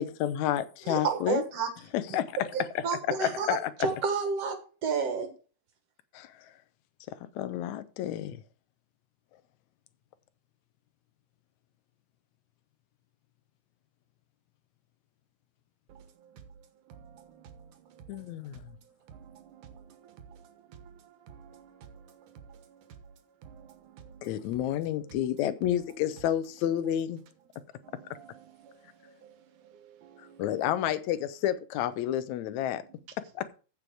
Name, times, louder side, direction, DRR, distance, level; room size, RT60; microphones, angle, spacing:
voice 1, 0.0-1.4 1.9-2.4 3.2-3.7 6.1-6.5 7.4-8.4 18.1-18.6 24.2-27.2 30.2-32.8 33.4-33.6, left 11 dB, 75° left, 2.1 m, -30 dB
voice 2, 0.9-1.7 2.5-5.3, right 5 dB, 60° right, 2.3 m, -30 dB
voice 3, 16.9-18.4 19.1-22.8 23.4-24.4 27.8-29.3 29.7-30.4, right 7 dB, 85° right, 2.8 m, -52 dB
14.5 x 5.4 x 4.6 m
omnidirectional pair, 3.5 m